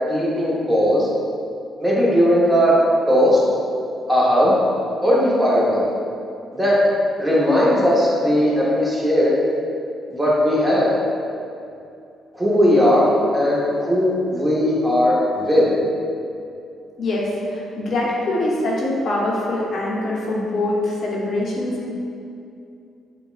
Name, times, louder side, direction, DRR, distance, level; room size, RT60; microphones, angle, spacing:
voice 1, 0.1-1.1 1.8-2.7 3.1-3.4 4.1-4.6 5.0-5.8 6.5-6.8 7.2-9.3 10.1-10.9 12.3-13.1 13.3-15.7, equal, 15° right, -6 dB, 0.8 m, -17 dB
voice 2, 17.0-21.9, left 1 dB, 55° left, -4 dB, 0.7 m, -23 dB
4.9 x 2.2 x 2.4 m, 2.6 s
cardioid pair, 90°, 0 cm